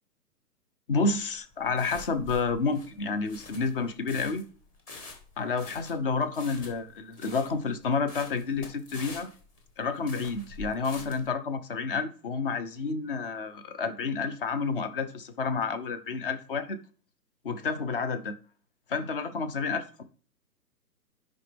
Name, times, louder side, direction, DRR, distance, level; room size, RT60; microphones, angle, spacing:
voice 1, 0.9-4.4 5.4-9.3 9.8-16.8 17.4-18.3 18.9-20.0, left 4 dB, 35° left, 0.8 m, -30 dB
sound 1, 1.2-11.3, left 3 dB, 15° left, 1.3 m, -46 dB
9.7 x 5.2 x 3.5 m
hypercardioid pair, 155°, 49 cm